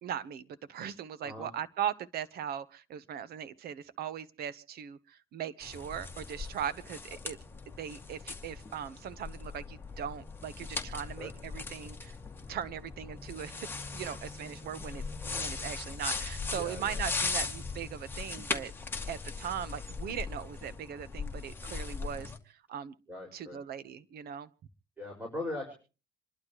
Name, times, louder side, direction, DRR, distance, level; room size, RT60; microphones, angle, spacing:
voice 1, 0.0-7.4 7.7-12.2 12.5-13.7 13.9-15.0 15.3-18.7 19.1-22.9 23.3-24.5, right 9 dB, 65° right, 14 dB, 1.2 m, -39 dB
sound 1, 5.6-22.4, left 4 dB, 15° left, 2.1 m, -39 dB
voice 2, 16.5-17.0 23.1-23.6 25.0-25.7, left 1 dB, 10° right, 1 dB, 5.7 m, -40 dB
27.5 x 12.0 x 3.1 m, 0.35 s
cardioid pair, 110°, 17 cm